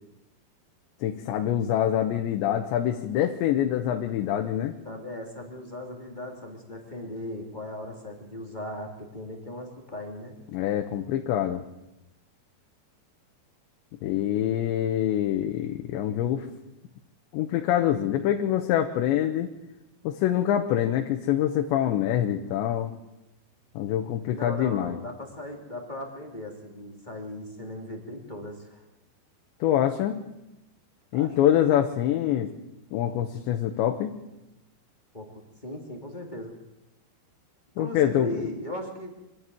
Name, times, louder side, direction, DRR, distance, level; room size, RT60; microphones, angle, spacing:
voice 1, 1.0-4.7 10.5-11.6 14.0-16.5 17.3-19.5 20.0-22.9 23.8-25.0 29.6-30.2 31.1-32.5 32.9-34.2 37.8-38.3, left 11 dB, 90° left, 4 dB, 3.4 m, -25 dB
voice 2, 4.8-10.4 24.3-28.8 31.1-31.4 35.1-36.6 37.8-39.1, left 1 dB, 15° left, 2 dB, 1.7 m, -38 dB
25.5 x 11.5 x 9.2 m, 0.96 s
omnidirectional pair, 5.0 m